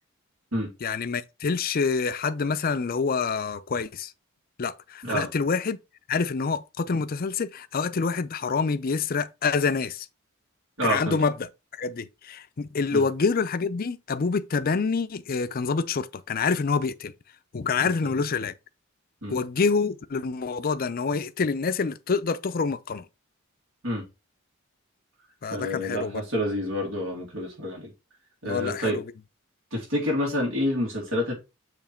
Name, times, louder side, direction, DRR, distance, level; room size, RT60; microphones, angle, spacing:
voice 1, 0.8-4.1 4.6-5.8 6.1-10.1 10.8-11.3 11.8-17.1 17.5-18.5 19.3-23.0 25.4-26.2 28.4-29.0, left 5 dB, 45° left, 0.5 m, -27 dB
voice 2, 10.8-11.2 12.9-13.0 18.0-18.1 19.2-19.4 23.8-24.0 25.5-27.9 28.4-29.0 29.7-31.3, equal, 70° right, 2.3 m, -28 dB
7.0 x 3.1 x 4.4 m
head